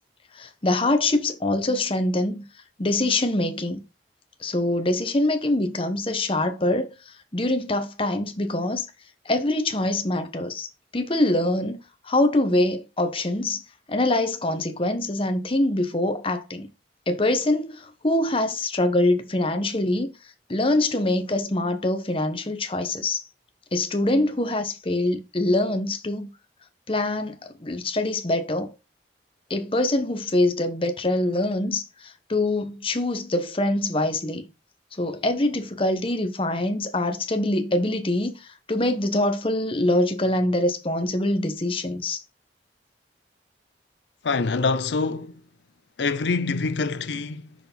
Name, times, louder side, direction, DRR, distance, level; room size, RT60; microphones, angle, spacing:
voice 1, 0.3-2.4 2.8-3.8 4.4-6.9 7.3-8.9 9.2-10.7 10.9-11.8 12.1-13.6 13.9-16.7 17.1-20.1 20.5-23.2 23.7-26.3 26.9-28.7 29.5-34.4 35.0-42.2, left 1 dB, 30° left, 1.1 m, -24 dB
voice 2, 44.2-45.4 46.0-47.5, left 4 dB, 75° left, 0.6 m, -25 dB
6.0 x 4.8 x 5.3 m
head